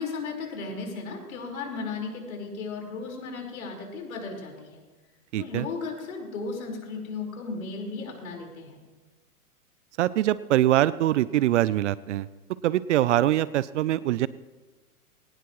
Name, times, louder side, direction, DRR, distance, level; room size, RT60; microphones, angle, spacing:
voice 1, 0.0-4.8 5.4-8.8, left 4 dB, 65° left, 1 dB, 4.9 m, -35 dB
voice 2, 5.3-5.7 10.0-12.3 12.6-14.3, right 13 dB, 50° right, 19 dB, 0.6 m, -23 dB
22.5 x 18.5 x 3.2 m, 1.3 s
hypercardioid pair, 120°, 45 cm